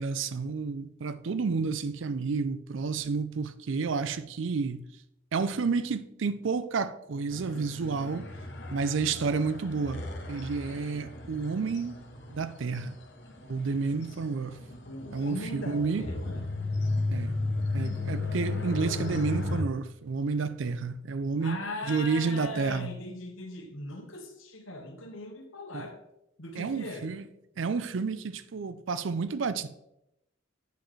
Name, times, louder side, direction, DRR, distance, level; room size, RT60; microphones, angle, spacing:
voice 1, 0.0-4.9 5.3-8.3 8.7-12.0 12.3-13.0 13.4-14.6 15.1-16.1 17.1-17.4 17.7-23.0 25.7-25.8 26.6-27.2 27.6-29.7, right 4 dB, 70° right, 0.5 m, -30 dB
sound 1, 7.3-19.6, left 2 dB, 55° left, 0.9 m, -35 dB
voice 2, 14.8-16.4 21.4-26.0 26.4-27.1, left 1 dB, 80° left, 1.4 m, -39 dB
8.3 x 6.1 x 3.2 m
head